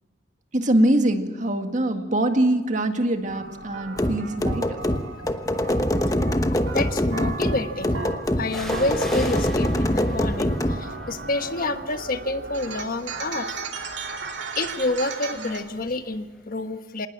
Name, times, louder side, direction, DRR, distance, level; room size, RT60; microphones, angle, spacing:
voice 1, 0.5-4.8, right 1 dB, 45° right, 6 dB, 1.9 m, -23 dB
sound 1, 3.3-15.6, right 3 dB, 70° right, 2.8 m, -36 dB
sound 2, 3.5-3.9 4.6-5.6 8.5-16.1 16.4-16.5, equal, ahead, 6.3 m, -41 dB
sound 3, 4.0-10.8, left 1 dB, 20° left, 1.1 m, -24 dB
voice 2, 6.7-8.0 8.4-13.5 14.6-17.1, left 2 dB, 50° left, 8 dB, 1.3 m, -28 dB
26.0 x 19.5 x 7.5 m, 1.3 s
head